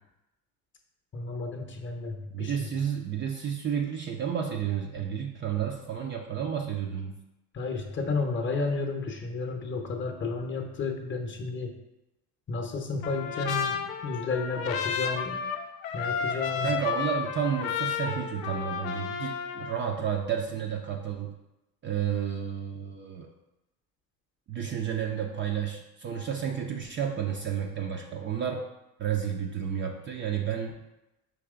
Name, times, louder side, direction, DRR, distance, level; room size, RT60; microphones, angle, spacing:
voice 1, 1.1-2.5 7.5-11.7 12.5-15.4 15.9-16.7, left 3 dB, 30° left, 4 dB, 0.8 m, -32 dB
voice 2, 2.3-7.1 16.6-21.3 21.8-23.3 24.5-28.6 29.0-30.7, right 8 dB, 30° right, 2 dB, 0.4 m, -31 dB
Trumpet, 13.0-19.8, left 7 dB, 75° left, 0.6 m, -32 dB
4.6 x 3.0 x 3.6 m, 0.94 s
hypercardioid pair, 75°, 42 cm